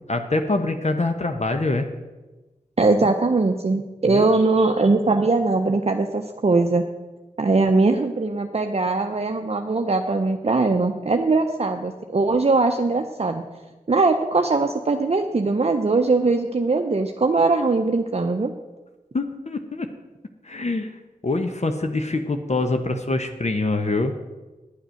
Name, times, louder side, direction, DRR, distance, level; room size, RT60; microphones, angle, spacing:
voice 1, 0.1-1.9 3.0-3.1 4.1-4.3 19.1-19.9 20.4-20.9 21.2-24.3, left 2 dB, 50° left, 6 dB, 0.8 m, -25 dB
voice 2, 2.8-6.9 7.4-13.4 13.9-18.5, right 3 dB, 45° right, 5 dB, 0.6 m, -21 dB
10.0 x 7.9 x 6.3 m, 1.2 s
wide cardioid pair, 50°, 15 cm